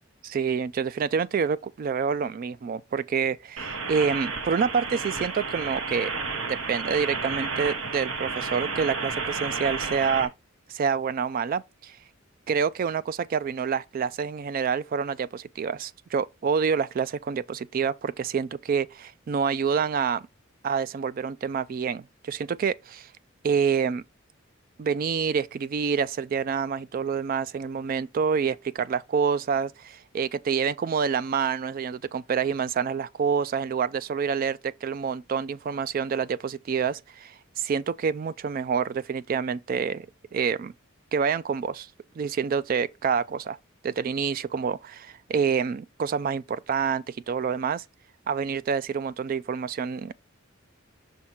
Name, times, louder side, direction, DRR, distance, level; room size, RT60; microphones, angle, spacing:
voice 1, 0.2-6.1 6.5-10.3 10.7-12.0 12.5-20.2 20.6-23.1 23.4-24.0 24.8-40.1 40.3-40.7 41.1-41.9 42.2-43.6 43.8-47.8 48.3-50.1, right 6 dB, 45° right, 0.3 m, -27 dB
sound 1, 3.6-10.3, right 4 dB, 80° right, 1.1 m, -31 dB
6.3 x 3.6 x 4.3 m
head